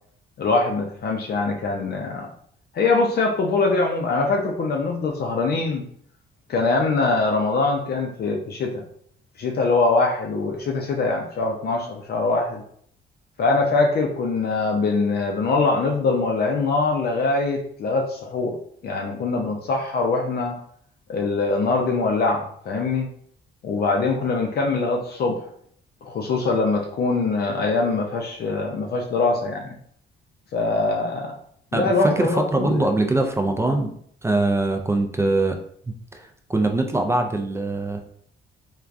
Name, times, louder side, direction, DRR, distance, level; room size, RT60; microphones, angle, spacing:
voice 1, 0.4-2.3 2.7-5.8 6.5-8.8 9.4-12.6 13.4-18.6 18.8-20.6 21.1-23.1 23.6-25.5 26.0-29.8 30.5-31.4 31.7-32.8, left 3 dB, 55° left, 0 dB, 0.5 m, -23 dB
voice 2, 31.7-33.9 34.2-35.6 35.9-38.0, right 2 dB, 15° right, 4 dB, 0.3 m, -23 dB
3.2 x 2.3 x 2.5 m, 0.62 s
cardioid pair, 90°, 20 cm